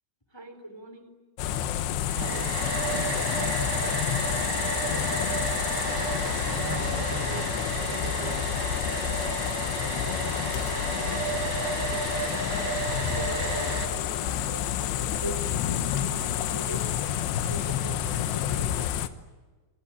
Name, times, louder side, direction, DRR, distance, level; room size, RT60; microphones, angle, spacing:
voice 1, 0.3-1.1 4.8-5.3 10.5-11.3 13.1-17.1 17.5-18.9, right 1 dB, 5° left, 8 dB, 2.3 m, -42 dB
sound 1, 1.4-19.1, left 10 dB, 70° left, 2.8 m, -29 dB
voice 2, 2.0-3.4 6.5-8.5, right 11 dB, 75° right, 8 dB, 2.4 m, -40 dB
Domestic sounds home sounds, 2.1-13.9, right 4 dB, 50° right, 5.3 m, -32 dB
27.0 x 24.0 x 8.8 m, 1.3 s
omnidirectional pair, 5.9 m